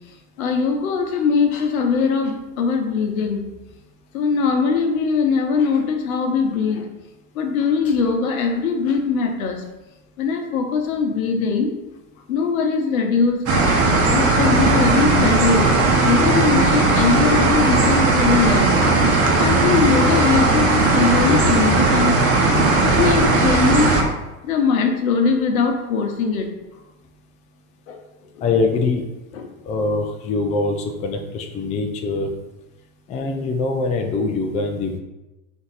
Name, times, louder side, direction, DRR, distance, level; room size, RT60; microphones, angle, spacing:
voice 1, 0.4-3.5 4.1-6.8 7.3-9.6 10.2-11.7 12.3-13.4 13.7-15.7 16.0-18.7 19.4-22.2 22.8-23.9 24.4-26.5 27.9-28.0 28.4-28.5 29.3-29.5, left 5 dB, 75° left, 4 dB, 0.9 m, -21 dB
sound 1, 13.5-24.0, right 3 dB, 35° right, 1.0 m, -17 dB
voice 2, 28.4-29.0 29.7-32.3 33.1-35.0, left 3 dB, 20° left, 3 dB, 0.3 m, -23 dB
4.5 x 2.7 x 3.9 m, 1.0 s
hypercardioid pair, 100°, 42 cm